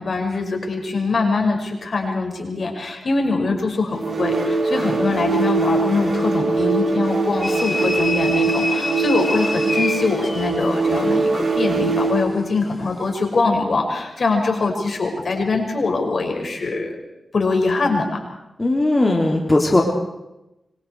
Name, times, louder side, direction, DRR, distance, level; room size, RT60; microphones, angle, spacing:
voice 1, 0.0-17.0 17.3-18.2, left 3 dB, 60° left, 3 dB, 6.3 m, -23 dB
sound 1, 3.9-12.3, right 3 dB, 60° right, 6.0 m, -22 dB
sound 2, 7.4-10.7, left 2 dB, 45° left, 3.5 m, -27 dB
voice 2, 18.6-19.8, left 2 dB, 25° left, 1 dB, 3.4 m, -17 dB
26.5 x 25.5 x 4.8 m, 0.91 s
cardioid pair, 65°, 0 cm